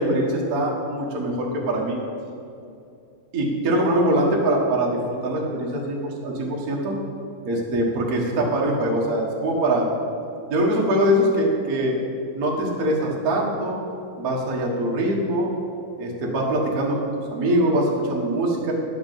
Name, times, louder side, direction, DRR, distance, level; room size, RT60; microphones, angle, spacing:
voice 1, 0.0-2.0 3.3-6.9 7.4-9.9 10.5-11.9 12.3-13.8 14.2-15.5 16.0-17.0 17.3-18.7, right 1 dB, 60° right, -2 dB, 0.9 m, -23 dB
10.5 x 6.0 x 7.5 m, 2.6 s
omnidirectional pair, 4.0 m